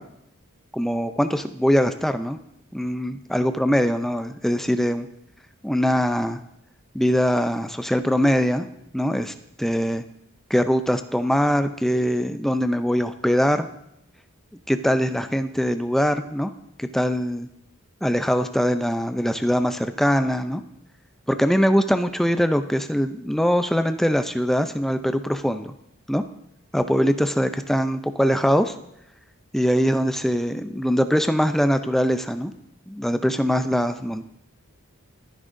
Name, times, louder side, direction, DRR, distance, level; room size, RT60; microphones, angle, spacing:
voice 1, 0.7-2.4 2.7-5.1 5.6-6.4 6.9-8.7 8.9-10.0 10.5-13.7 14.7-16.5 16.8-17.5 18.0-20.6 21.4-25.7 26.1-26.2 26.7-28.7 29.5-32.5 32.9-34.3, equal, ahead, 8 dB, 0.5 m, -22 dB
25.5 x 10.0 x 2.6 m, 0.78 s
head